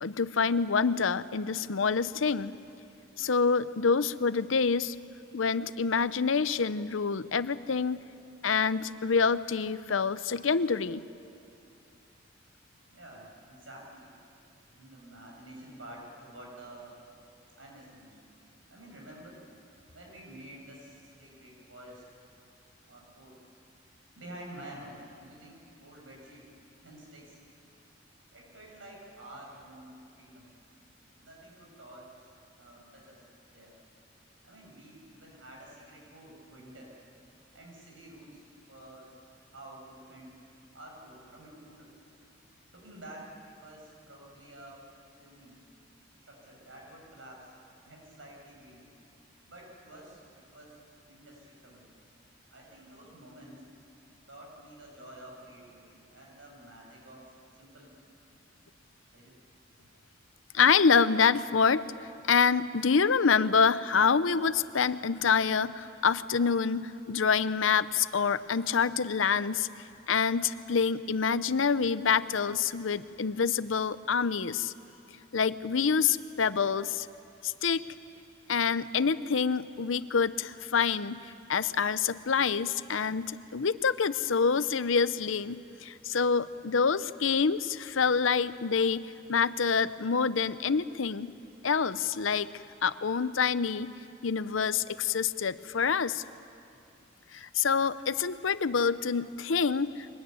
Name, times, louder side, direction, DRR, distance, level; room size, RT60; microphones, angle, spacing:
voice 1, 0.0-2.5 3.2-4.9 5.3-8.0 8.4-11.0 60.5-61.8 62.3-69.7 70.1-74.7 75.3-77.1 77.4-77.8 78.5-81.2 81.5-91.3 91.6-92.5 92.8-93.9 94.2-96.2 97.3-100.1, left 5 dB, 85° left, 15 dB, 0.7 m, -27 dB
voice 2, 12.9-14.1 14.7-16.9 17.6-18.2 18.7-19.4 19.9-22.0 22.9-23.4 24.2-26.5 26.8-27.4 28.3-30.5 31.2-32.3 32.6-33.2 33.5-33.7 34.4-37.0 37.5-40.4 40.7-42.0 42.7-44.8 45.2-45.6 46.2-47.5 47.8-48.8 49.5-50.8 51.1-51.9 52.5-53.6 54.3-57.9 59.1-59.4, right 1 dB, 75° right, -2 dB, 7.7 m, -50 dB
23.5 x 20.0 x 9.5 m, 2.5 s
head